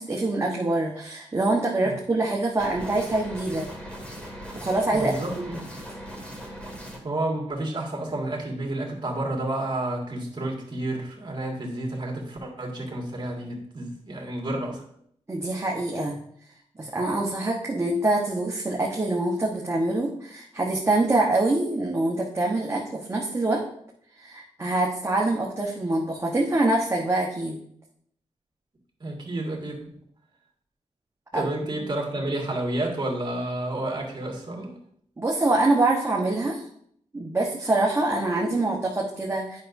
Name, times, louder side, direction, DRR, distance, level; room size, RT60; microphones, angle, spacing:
voice 1, 0.0-3.7 4.5-5.3 15.3-16.2 16.8-23.6 24.2-27.6 31.3-31.5 35.2-36.7 37.1-39.6, right 2 dB, 20° right, -3 dB, 1.1 m, -25 dB
sound 1, 2.6-7.0, equal, 10° left, 2.0 m, -39 dB
voice 2, 4.9-5.6 7.0-14.8 29.0-29.8 31.3-34.7, right 1 dB, 40° right, -1 dB, 1.9 m, -30 dB
8.8 x 5.8 x 2.7 m, 0.67 s
cardioid pair, 75°, 12 cm